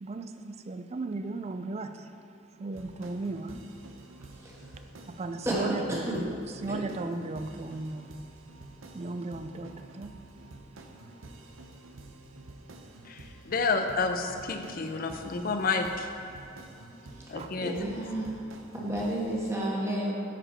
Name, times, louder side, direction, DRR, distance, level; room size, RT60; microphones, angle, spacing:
voice 1, 0.0-2.1 2.6-3.6 5.1-8.1 8.9-10.1 17.3-17.5, right 2 dB, 30° right, 0.4 m, -36 dB
sound 1, 2.7-19.6, right 2 dB, 80° right, 0.7 m, -49 dB
voice 2, 5.4-6.2 6.7-6.8 17.6-18.3 18.7-20.1, right 1 dB, 15° right, 1.3 m, -31 dB
voice 3, 13.1-16.1 17.3-18.1, left 4 dB, 45° left, 0.6 m, -30 dB
10.0 x 5.0 x 4.3 m
head